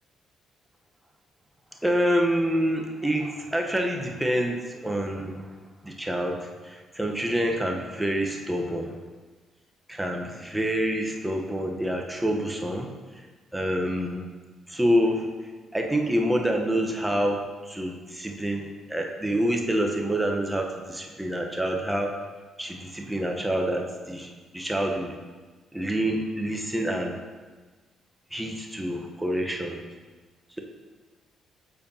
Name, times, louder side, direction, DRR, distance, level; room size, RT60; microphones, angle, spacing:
voice 1, 1.8-5.6 5.8-9.0 9.9-13.3 13.5-14.3 14.7-15.3 15.7-22.1 22.6-25.2 25.7-27.2 28.3-29.8, equal, 10° right, 2 dB, 1.0 m, -27 dB
8.4 x 4.4 x 2.8 m, 1.3 s
hypercardioid pair, 50°, 0 cm